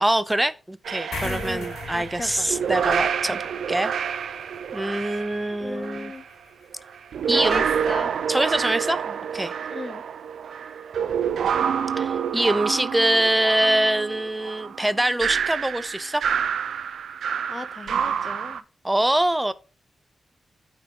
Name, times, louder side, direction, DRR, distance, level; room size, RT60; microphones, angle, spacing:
voice 1, 0.0-3.4 3.7-3.9 4.7-6.1 7.3-7.6 8.3-9.0 9.3-9.5 12.0-16.2 18.8-19.5, right 1 dB, 10° right, 0.5 m, -24 dB
sound 1, 0.8-6.2 6.9-18.6, right 7 dB, 85° right, 0.4 m, -28 dB
sound 2, 1.1-7.9, left 5 dB, 80° left, 1.3 m, -41 dB
voice 2, 1.2-2.5 3.3-3.4 4.9-5.3 5.6-6.2 7.3-8.1 9.1-9.2 9.7-10.0 17.5-18.6, left 3 dB, 35° left, 0.5 m, -37 dB
8.9 x 4.6 x 3.8 m
cardioid pair, 70°, 0 cm